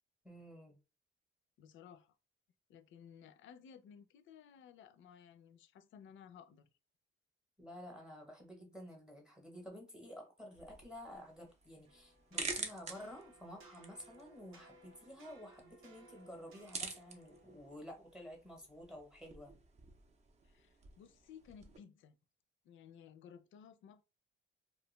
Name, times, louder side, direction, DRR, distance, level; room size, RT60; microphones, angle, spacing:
voice 1, 0.2-0.8 7.6-19.5, equal, 5° right, 0.8 m, -51 dB
voice 2, 1.6-2.1 2.7-6.7 20.4-22.1 22.6-24.0, left 8 dB, 65° left, 0.4 m, -57 dB
sound 1, 10.5-21.8, right 4 dB, 30° right, 0.5 m, -49 dB
sound 2, 11.9-17.8, right 3 dB, 75° right, 0.8 m, -62 dB
2.3 x 2.2 x 3.0 m
cardioid pair, 125°, 21 cm